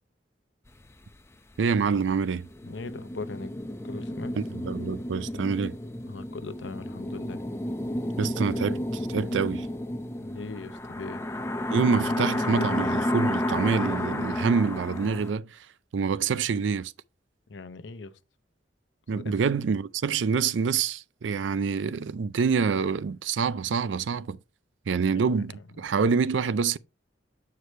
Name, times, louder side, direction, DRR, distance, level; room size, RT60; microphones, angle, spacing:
sound 1, 0.7-1.1 1.6-1.7 2.3-15.3, left 1 dB, 15° left, 0.5 m, -31 dB
voice 1, 1.6-2.5 4.4-5.8 8.2-9.7 11.7-15.7 15.9-16.9 19.1-24.4 24.9-26.8, right 5 dB, 80° right, 0.4 m, -26 dB
voice 2, 2.6-3.6 3.8-4.4 6.1-7.5 10.2-11.2 17.5-18.1 19.1-19.3 25.2-25.5, left 3 dB, 75° left, 0.7 m, -40 dB
8.1 x 4.8 x 3.2 m
head